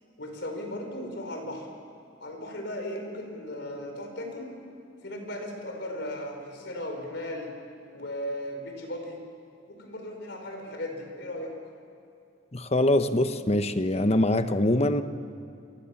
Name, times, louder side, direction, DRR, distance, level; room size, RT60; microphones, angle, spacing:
voice 1, 0.2-1.7 2.2-4.6 5.0-7.5 7.9-9.2 9.7-11.5, left 1 dB, 65° left, 3 dB, 5.0 m, -36 dB
voice 2, 12.5-15.0, left 1 dB, 35° left, 9 dB, 1.1 m, -23 dB
29.5 x 24.5 x 7.2 m, 2.6 s
head